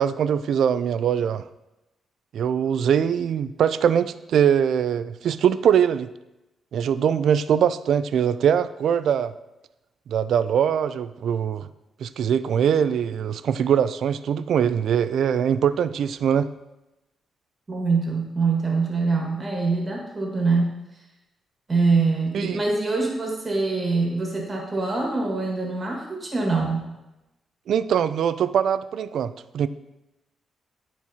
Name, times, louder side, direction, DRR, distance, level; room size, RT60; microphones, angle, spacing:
voice 1, 0.0-1.4 2.3-6.1 6.7-9.3 10.1-11.7 12.0-16.5 22.3-22.6 27.7-29.7, right 8 dB, 75° right, 14 dB, 0.3 m, -22 dB
voice 2, 17.7-20.8 21.7-26.9, right 3 dB, 35° right, -1 dB, 1.6 m, -24 dB
11.5 x 4.4 x 2.8 m, 0.97 s
cardioid pair, 90°, 0 cm